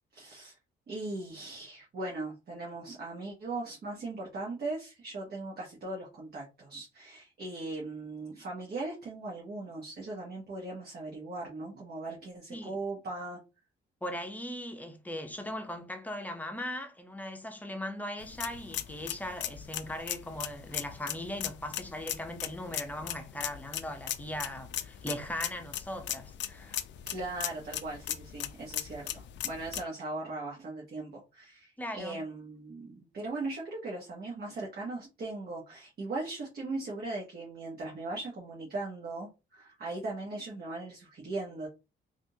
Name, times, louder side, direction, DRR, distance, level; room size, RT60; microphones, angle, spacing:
voice 1, 0.1-0.5 0.9-13.4 27.1-41.7, right 2 dB, 50° right, 1.2 m, -39 dB
voice 2, 14.0-26.8 31.8-32.2, left 1 dB, 10° left, 0.7 m, -39 dB
sound 1, 18.2-29.8, left 11 dB, 65° left, 0.4 m, -38 dB
3.4 x 2.6 x 2.8 m
cardioid pair, 90°, 20 cm